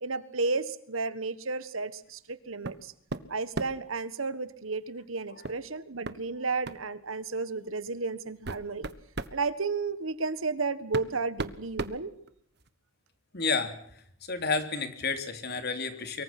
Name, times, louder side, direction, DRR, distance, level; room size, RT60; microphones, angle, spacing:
voice 1, 0.0-2.9 3.3-8.9 9.3-12.1, right 4 dB, 80° right, 15 dB, 1.5 m, -33 dB
sound 1, 2.6-2.8 3.1-3.9 5.4-5.6 6.0-6.2 6.6-6.9 7.7-7.8 8.3-9.4 10.4-10.5 10.9-12.7, right 2 dB, 55° right, 1.3 m, -36 dB
voice 2, 13.3-13.8 14.3-16.2, left 4 dB, 50° left, 8 dB, 3.2 m, -30 dB
24.5 x 23.0 x 6.0 m, 0.67 s
head